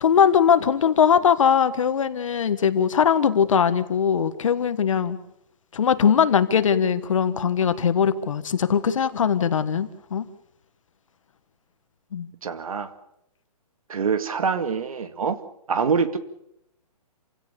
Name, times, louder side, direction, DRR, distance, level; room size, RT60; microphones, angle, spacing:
voice 1, 0.0-5.2 5.7-10.2 12.1-12.3, left 7 dB, 55° left, 12 dB, 1.5 m, -20 dB
voice 2, 12.4-12.9 13.9-15.4 15.7-16.2, right 5 dB, 65° right, 11 dB, 2.2 m, -25 dB
28.0 x 17.0 x 7.0 m, 0.79 s
hypercardioid pair, 170°, 20 cm